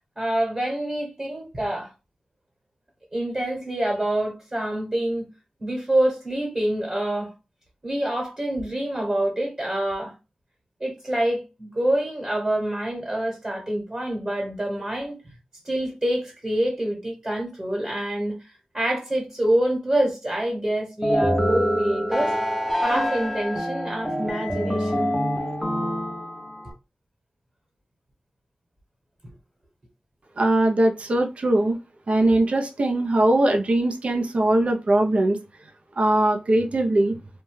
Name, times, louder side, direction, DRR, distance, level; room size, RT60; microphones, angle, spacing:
voice 1, 0.2-1.9 3.1-5.3 5.6-7.3 7.8-10.1 10.8-15.2 15.6-22.3 22.8-25.1, right 1 dB, 30° right, 1.1 m, -26 dB
sound 1, 21.0-26.7, equal, ahead, 0.6 m, -25 dB
voice 2, 30.4-31.8 32.1-35.4 36.0-37.2, right 1 dB, 55° right, 0.5 m, -21 dB
2.7 x 2.2 x 3.1 m
wide cardioid pair, 80°, 3 cm